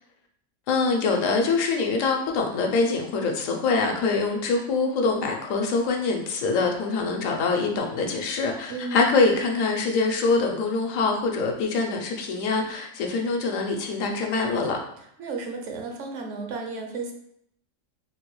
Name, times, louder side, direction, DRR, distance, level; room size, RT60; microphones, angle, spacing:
voice 1, 0.7-14.8, left 4 dB, 75° left, 2 dB, 1.0 m, -24 dB
voice 2, 8.7-9.1 15.2-17.1, right 3 dB, 70° right, 3 dB, 0.9 m, -33 dB
3.9 x 2.2 x 3.0 m, 0.71 s
omnidirectional pair, 1.4 m